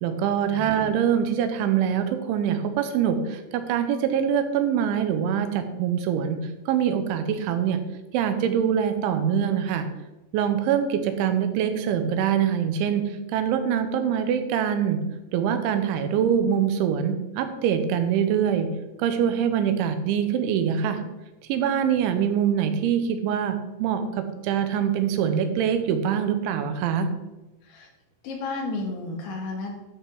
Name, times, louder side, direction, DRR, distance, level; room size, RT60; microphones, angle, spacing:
voice 1, 0.0-6.4 6.7-7.8 8.1-9.9 10.3-15.0 15.3-18.7 19.0-21.0 21.5-27.1, right 8 dB, 90° right, 8 dB, 3.3 m, -24 dB
voice 2, 28.2-29.7, left 3 dB, 80° left, 0 dB, 4.1 m, -32 dB
12.5 x 5.6 x 4.6 m, 1.0 s
omnidirectional pair, 5.3 m